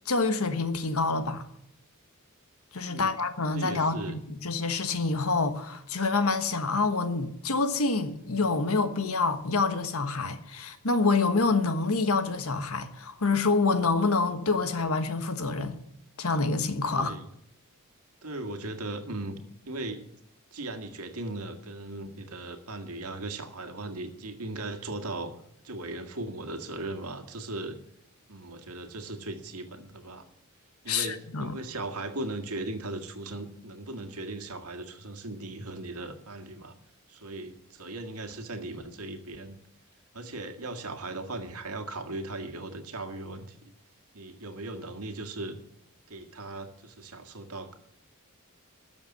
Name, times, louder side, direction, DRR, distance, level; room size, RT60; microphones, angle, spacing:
voice 1, 0.1-1.4 2.7-15.8 16.2-17.1 30.9-31.6, left 3 dB, 75° left, 1.4 m, -27 dB
voice 2, 3.5-4.2 16.9-17.3 18.2-19.4 19.7-20.0 20.5-25.3 25.6-27.8 28.3-30.3 30.8-36.8 37.1-39.6 40.1-43.7 44.1-45.6 46.1-47.7, right 2 dB, 90° right, 1.8 m, -38 dB
13.5 x 7.1 x 9.8 m
head